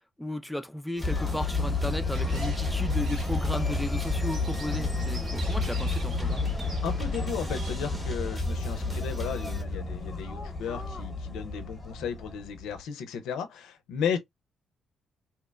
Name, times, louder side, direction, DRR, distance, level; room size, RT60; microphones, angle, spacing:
voice 1, 0.2-6.5, left 1 dB, ahead, 0.3 m, -34 dB
sound 1, 1.0-12.8, left 3 dB, 20° left, 1.0 m, -31 dB
sound 2, 1.0-9.6, equal, 15° right, 0.9 m, -37 dB
sound 3, 2.1-7.8, right 3 dB, 55° right, 1.1 m, -46 dB
voice 2, 6.8-14.2, left 7 dB, 90° left, 0.4 m, -34 dB
2.8 x 2.1 x 2.2 m
cardioid pair, 90°, 0 cm